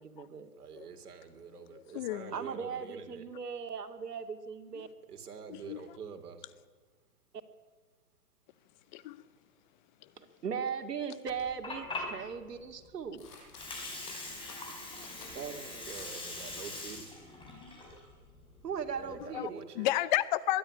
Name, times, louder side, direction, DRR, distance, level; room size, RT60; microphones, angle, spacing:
voice 1, 0.0-0.5 2.3-4.9 10.2-13.2 15.3-15.9 18.6-19.7, right 6 dB, 90° right, 2.6 m, -38 dB
voice 2, 0.6-3.3 5.1-6.4 15.9-17.1 18.9-19.9, right 6 dB, 70° right, 3.5 m, -46 dB
voice 3, 1.5-2.3 5.5-5.8 8.9-9.2 19.3-19.5 19.8-20.6, left 15 dB, 30° left, 0.7 m, -32 dB
Water, 11.3-19.2, left 2 dB, 10° left, 5.0 m, -43 dB
sound 1, 11.4-11.5 11.9-12.3 13.2-15.5 15.9-16.1 16.4-17.1, left 4 dB, 75° left, 7.9 m, -54 dB
22.0 x 12.5 x 10.0 m
hypercardioid pair, 140°, 47 cm